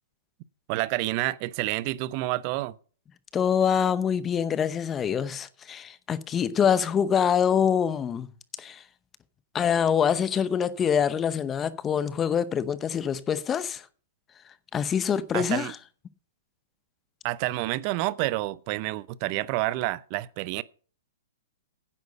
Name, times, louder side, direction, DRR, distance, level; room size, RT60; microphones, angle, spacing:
voice 1, 0.7-2.7 15.3-15.7 17.2-20.6, right 18 dB, 40° right, 0.6 m, -29 dB
voice 2, 3.3-8.3 8.6-8.8 9.5-13.9 14.7-15.8, left 8 dB, 20° left, 0.7 m, -25 dB
10.0 x 8.1 x 5.4 m
hypercardioid pair, 135°, 0 cm